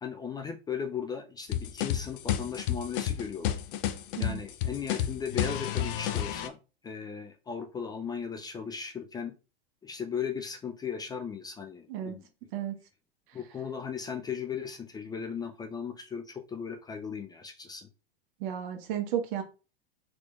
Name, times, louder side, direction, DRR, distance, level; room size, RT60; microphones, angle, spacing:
voice 1, 0.0-3.6 4.2-6.6 6.8-9.3 9.8-12.3 13.3-17.9, left 6 dB, 15° left, 5 dB, 0.3 m, -37 dB
sound 1, 1.5-6.5, left 11 dB, 60° left, 0.6 m, -31 dB
voice 2, 18.4-19.4, right 10 dB, 55° right, 5 dB, 0.9 m, -33 dB
4.0 x 2.9 x 2.4 m, 0.32 s
hypercardioid pair, 100°, 30 cm